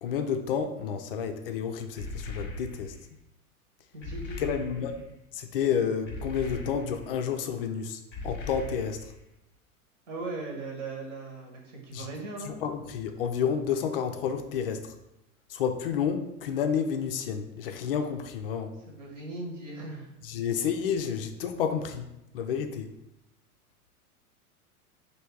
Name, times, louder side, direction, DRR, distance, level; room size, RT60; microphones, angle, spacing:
voice 1, 0.0-2.9 4.4-5.0 5.3-9.1 11.9-12.1 12.4-14.9 15.5-18.7 20.2-22.1 22.3-22.9, left 7 dB, 40° left, 6 dB, 0.4 m, -30 dB
sound 1, 2.0-3.1 4.0-5.1 6.1-7.2 8.1-9.2, left 2 dB, 25° left, 0.8 m, -39 dB
voice 2, 3.9-4.6 10.1-12.6 18.9-20.1, right 3 dB, 55° right, 0 dB, 1.3 m, -38 dB
3.3 x 2.7 x 4.4 m, 0.85 s
figure-of-eight pair, 95°, 44 cm